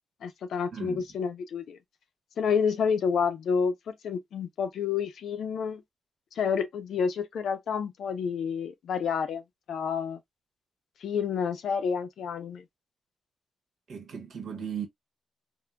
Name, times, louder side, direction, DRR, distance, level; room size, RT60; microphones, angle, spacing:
voice 1, 0.2-1.8 2.4-5.8 6.4-9.4 9.7-10.2 11.0-12.6, left 6 dB, 85° left, 0.6 m, -29 dB
voice 2, 0.7-1.1 13.9-14.9, right 7 dB, 70° right, 1.0 m, -37 dB
3.7 x 2.6 x 2.2 m
cardioid pair, 120°, 0 cm